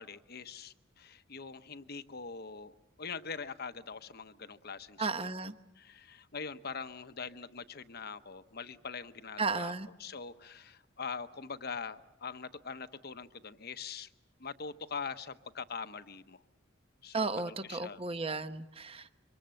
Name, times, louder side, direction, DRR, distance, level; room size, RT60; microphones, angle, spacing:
voice 1, 0.0-2.7 3.0-5.1 5.8-9.7 10.0-14.1 14.4-16.4 17.0-18.0, left 5 dB, 50° left, 11 dB, 1.0 m, -43 dB
voice 2, 5.0-5.6 9.4-9.9 17.1-19.2, right 4 dB, 30° right, 10 dB, 0.9 m, -34 dB
26.5 x 24.5 x 7.7 m, 0.93 s
head